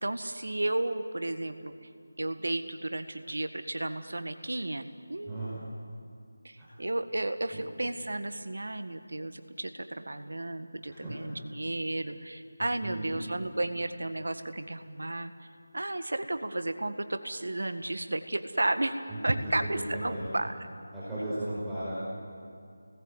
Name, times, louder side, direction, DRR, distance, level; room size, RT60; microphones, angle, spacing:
voice 1, 0.0-1.7 2.2-5.6 6.4-15.5 15.7-20.7, right 2 dB, 80° right, 8 dB, 1.8 m, -33 dB
voice 2, 5.3-5.6 6.6-6.7 7.5-7.6 10.8-11.3 12.6-13.2 19.1-20.3 20.9-21.9, right 1 dB, 5° right, -14 dB, 5.2 m, -36 dB
30.0 x 19.5 x 8.2 m, 2.4 s
figure-of-eight pair, 170°, 0 cm